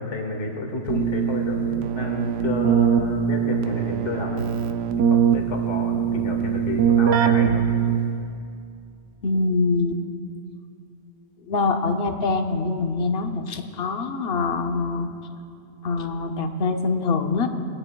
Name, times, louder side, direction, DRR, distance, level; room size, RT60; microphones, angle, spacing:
voice 1, 0.0-4.5 5.1-7.7, left 2 dB, 75° left, 2 dB, 1.7 m, -30 dB
Keyboard (musical), 0.9-8.4, right 8 dB, 80° right, 0.9 m, -22 dB
voice 2, 9.2-10.0 11.4-15.1 15.8-17.5, left 3 dB, 60° left, 6 dB, 0.9 m, -24 dB
25.0 x 9.8 x 2.2 m, 2.4 s
omnidirectional pair, 1.2 m